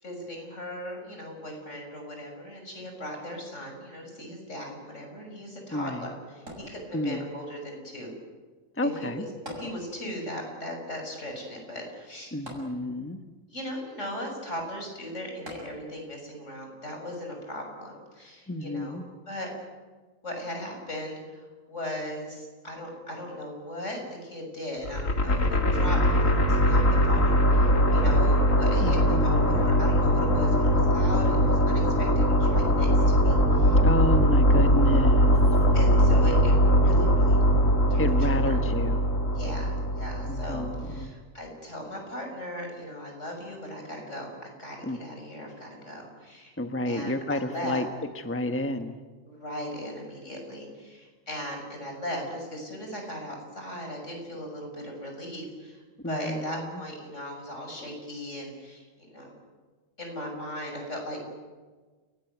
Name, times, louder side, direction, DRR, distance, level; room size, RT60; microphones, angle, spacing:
voice 1, 0.0-8.1 8.8-12.3 13.5-19.0 19.3-19.5 20.2-26.0 26.2-33.8 35.7-37.4 37.9-38.6 39.4-46.5 46.9-47.9 49.3-59.3 60.0-61.3, left 1 dB, 70° left, 2 dB, 6.9 m, -38 dB
voice 2, 5.7-6.1 6.9-7.3 8.7-9.2 12.3-13.2 18.5-19.0 28.8-29.6 33.8-35.4 38.0-39.0 40.3-41.1 44.8-45.0 46.6-47.9 48.1-49.0 56.0-56.8, left 1 dB, 10° left, 7 dB, 1.2 m, -30 dB
sound 1, 6.5-7.4 9.5-10.3 10.6-10.7 12.5-13.3 15.5-16.2 16.9-17.0, right 1 dB, 80° right, 7.3 m, -43 dB
sound 2, 24.8-41.0, equal, 85° left, 2.8 m, -21 dB
29.5 x 18.5 x 9.4 m, 1.4 s
omnidirectional pair, 1.3 m